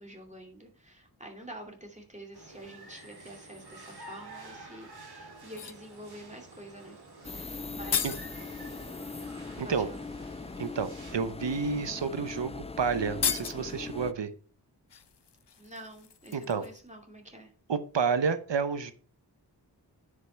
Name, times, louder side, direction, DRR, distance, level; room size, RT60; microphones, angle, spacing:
voice 1, 0.0-7.0 7.3-8.1 9.6-10.1 15.6-17.5, right 1 dB, 15° right, 1 dB, 2.7 m, -47 dB
sound 1, 2.3-11.1, right 2 dB, 60° right, 3.2 m, -50 dB
sound 2, 5.4-5.9 7.4-7.5 7.6-8.3 9.7-9.8 10.5-10.7 11.6-11.7 12.0-12.2 12.4-12.5 13.1-13.8 14.9-16.9 17.2-17.4, left 8 dB, 70° left, 0.8 m, -35 dB
sound 3, 7.2-14.1, left 3 dB, 15° left, 0.3 m, -40 dB
voice 2, 9.6-9.9 10.6-14.3 16.3-16.6 17.7-18.9, right 5 dB, 85° right, 11 dB, 0.9 m, -30 dB
9.8 x 5.5 x 4.5 m, 0.38 s
wide cardioid pair, 60°, 42 cm